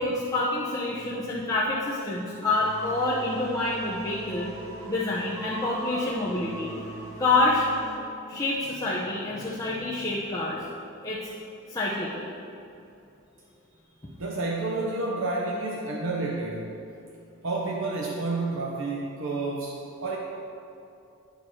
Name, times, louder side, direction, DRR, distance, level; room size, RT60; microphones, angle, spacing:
voice 1, 0.0-4.5 4.9-6.7 7.2-7.7 8.3-10.6 11.0-11.3 11.7-12.3, left 2 dB, 15° left, -7 dB, 0.7 m, -27 dB
sound 1, 2.5-8.0, right 1 dB, 15° right, 1.8 m, -40 dB
voice 2, 14.2-16.7 17.4-20.2, right 2 dB, 60° right, -2 dB, 0.8 m, -30 dB
9.3 x 4.7 x 6.2 m, 2.6 s
head